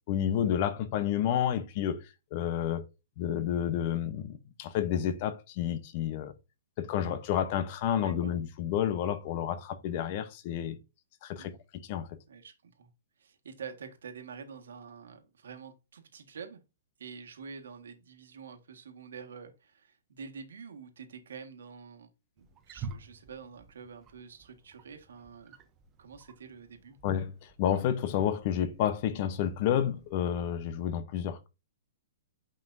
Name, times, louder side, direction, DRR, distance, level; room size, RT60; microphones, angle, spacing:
voice 1, 0.1-2.0 2.3-2.9 3.2-6.3 6.8-10.8 11.2-11.5 11.9-12.2 27.0-31.5, left 10 dB, 35° left, 0.8 m, -30 dB
voice 2, 8.0-8.3 11.3-11.6 12.3-12.9 13.2-16.6 17.0-22.1 22.4-25.6 26.0-27.0, right 6 dB, 85° right, 1.6 m, -47 dB
Wild animals, 22.4-30.9, right 5 dB, 20° right, 0.7 m, -50 dB
8.9 x 5.4 x 2.7 m
hypercardioid pair, 160°, 0 cm